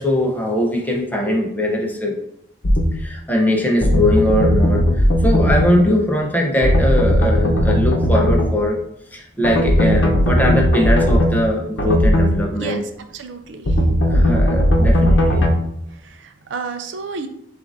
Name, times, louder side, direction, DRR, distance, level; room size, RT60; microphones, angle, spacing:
voice 1, 0.0-2.1 2.9-8.8 9.1-12.8 14.1-15.5, left 1 dB, 10° left, -1 dB, 0.7 m, -20 dB
sound 1, 2.6-2.9 3.8-5.7 6.6-8.5 9.4-11.3 11.8-12.3 13.7-15.5, equal, 75° left, 0.8 m, -16 dB
voice 2, 13.1-13.8 16.0-17.3, right 5 dB, 70° right, 7 dB, 0.4 m, -31 dB
6.5 x 2.5 x 2.6 m, 0.73 s
head